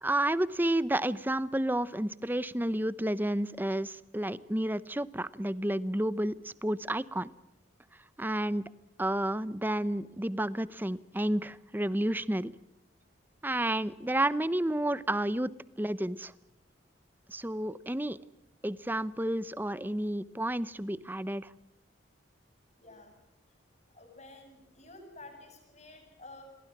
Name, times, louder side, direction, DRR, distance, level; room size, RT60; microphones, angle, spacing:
voice 1, 0.0-7.3 8.2-8.6 9.0-12.5 13.4-15.5 15.8-16.3 17.3-18.2 18.6-21.5, right 1 dB, 10° right, 16 dB, 0.7 m, -31 dB
voice 2, 22.8-23.1 23.9-26.4, left 2 dB, 35° left, 4 dB, 7.8 m, -51 dB
29.0 x 22.5 x 6.1 m, 0.92 s
head